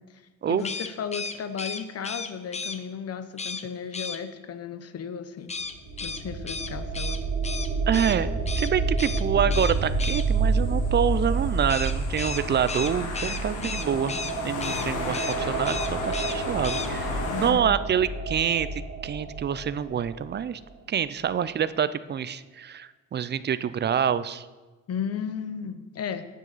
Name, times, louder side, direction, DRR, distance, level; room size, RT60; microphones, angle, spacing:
voice 1, 0.5-5.6 6.0-7.2 13.5-14.2 17.2-17.8 24.9-26.2, left 7 dB, 55° left, 11 dB, 0.8 m, -35 dB
sound 1, 0.6-2.8 3.4-3.6 3.9-4.2 5.5-8.2 8.5-8.7 9.0-9.2 9.5-10.2 11.7-14.3 14.6-14.9 15.1-15.4 15.6-16.4 16.6-16.9, left 4 dB, 20° left, 0.6 m, -34 dB
sound 2, 5.6-20.4, right 3 dB, 65° right, 2.8 m, -29 dB
voice 2, 7.9-14.1 14.4-20.6 20.9-24.5, right 8 dB, 35° right, 15 dB, 0.4 m, -27 dB
sound 3, 9.7-17.5, left 4 dB, 90° left, 1.4 m, -35 dB
9.2 x 9.2 x 4.0 m, 1.2 s
cardioid pair, 90°, 30 cm